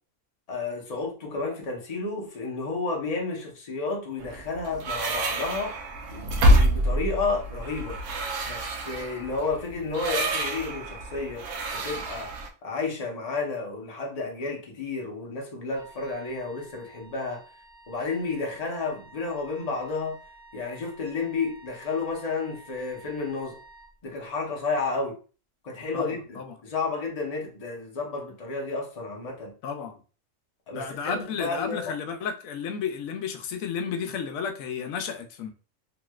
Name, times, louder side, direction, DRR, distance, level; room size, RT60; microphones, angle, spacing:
voice 1, 0.5-5.8 6.1-8.0 8.5-11.4 11.7-12.3 12.6-17.4 17.9-20.2 20.5-23.6 24.0-25.2 25.6-29.5 30.7-31.9, left 3 dB, 35° left, 0.8 m, -31 dB
sound 1, 4.2-12.5, equal, 70° right, 0.9 m, -27 dB
Wind instrument woodwind instrument, 15.7-23.9, right 2 dB, 20° right, 1.5 m, -51 dB
voice 2, 25.9-26.5 29.6-30.0 30.7-35.5, left 6 dB, 80° left, 1.0 m, -32 dB
3.0 x 2.9 x 2.3 m
omnidirectional pair, 1.4 m